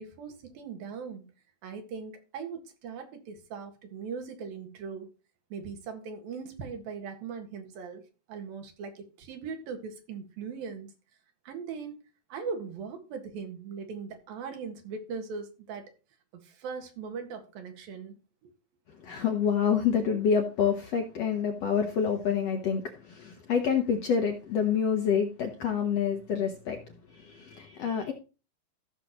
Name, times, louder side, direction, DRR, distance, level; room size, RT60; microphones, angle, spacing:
voice 1, 0.0-1.3 1.6-5.1 5.5-8.0 8.3-10.9 11.5-12.0 12.3-15.9 16.3-18.2 18.4-18.5, right 5 dB, 80° right, 5 dB, 3.4 m, -39 dB
voice 2, 19.0-28.1, left 7 dB, 65° left, 4 dB, 1.7 m, -27 dB
15.5 x 6.6 x 3.0 m, 0.32 s
omnidirectional pair, 4.2 m